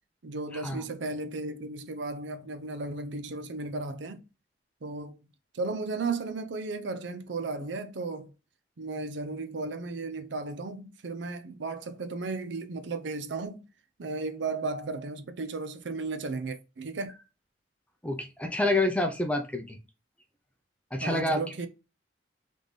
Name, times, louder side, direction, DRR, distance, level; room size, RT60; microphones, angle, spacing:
voice 1, 0.2-4.2 4.8-5.2 5.5-8.3 8.8-13.6 14.0-17.1 21.0-21.7, right 3 dB, 70° right, 0.5 m, -35 dB
voice 2, 18.0-19.8 20.9-21.4, left 2 dB, 5° left, 0.5 m, -27 dB
3.4 x 3.3 x 4.0 m
head